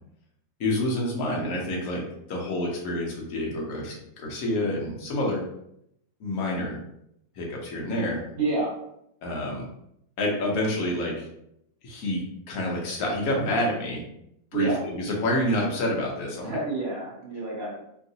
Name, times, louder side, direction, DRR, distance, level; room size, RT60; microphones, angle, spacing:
voice 1, 0.6-2.0 2.3-5.4 6.2-6.8 7.3-8.2 9.2-9.6 10.2-11.3 11.8-14.0 14.5-16.6, left 1 dB, 55° left, -2 dB, 1.1 m, -28 dB
voice 2, 8.3-8.7 14.5-14.8 16.4-17.8, right 2 dB, 55° right, -8 dB, 0.7 m, -28 dB
3.6 x 2.5 x 2.7 m, 0.76 s
omnidirectional pair, 2.1 m